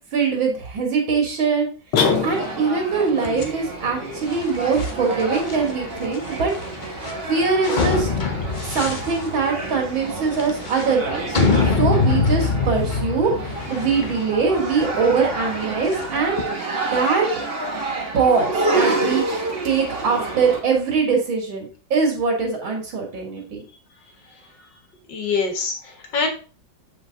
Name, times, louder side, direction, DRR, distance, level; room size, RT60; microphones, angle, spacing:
voice 1, 0.1-1.7 2.2-6.5 7.3-8.1 8.6-11.4 11.8-16.6 16.9-17.3 18.1-23.6, right 5 dB, 75° right, 0 dB, 2.5 m, -22 dB
sound 1, 1.9-2.8, left 5 dB, 90° left, 2.1 m, -21 dB
sound 2, 2.0-20.6, right 3 dB, 30° right, 1.5 m, -29 dB
sound 3, 3.2-16.5, left 4 dB, 35° left, 0.8 m, -25 dB
voice 2, 25.1-26.3, left 5 dB, 65° left, 3 dB, 2.3 m, -24 dB
7.8 x 4.8 x 3.9 m, 0.37 s
omnidirectional pair, 2.2 m